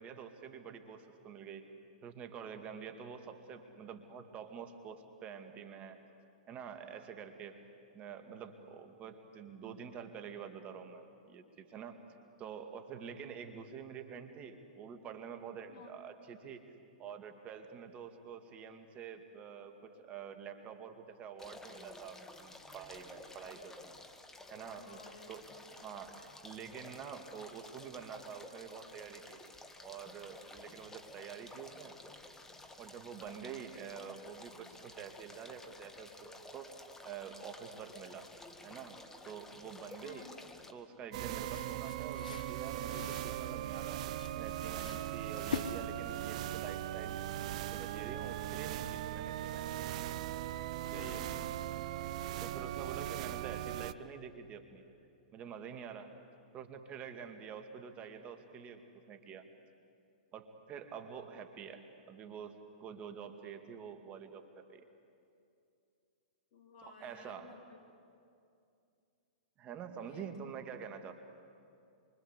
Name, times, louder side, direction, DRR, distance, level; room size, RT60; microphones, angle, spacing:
voice 1, 0.0-1.6 2.0-6.1 6.5-7.6 7.9-12.0 12.4-16.6 17.0-23.9 24.5-25.0 25.3-29.4 29.8-32.0 32.8-36.8 37.0-38.3 38.6-40.3 40.7-44.0 44.3-47.2 47.7-49.8 50.9-51.2 52.4-54.8 55.3-56.1 56.5-59.5 60.3-64.4 64.7-64.8 66.8-67.5 69.6-71.1, right 7 dB, 30° right, 6 dB, 2.2 m, -47 dB
sound 1, 21.4-40.7, left 2 dB, 10° left, 1.9 m, -53 dB
voice 2, 24.8-25.3 25.7-25.9 40.0-40.4 50.9-51.6 66.5-67.8 70.0-70.3, left 5 dB, 55° left, 3 dB, 3.6 m, -54 dB
sound 2, 41.1-53.9, right 12 dB, 55° right, 0.8 m, -39 dB
sound 3, 41.3-46.3, left 6 dB, 80° left, 1.0 m, -45 dB
26.5 x 24.5 x 8.3 m, 2.5 s
hypercardioid pair, 115°, 4 cm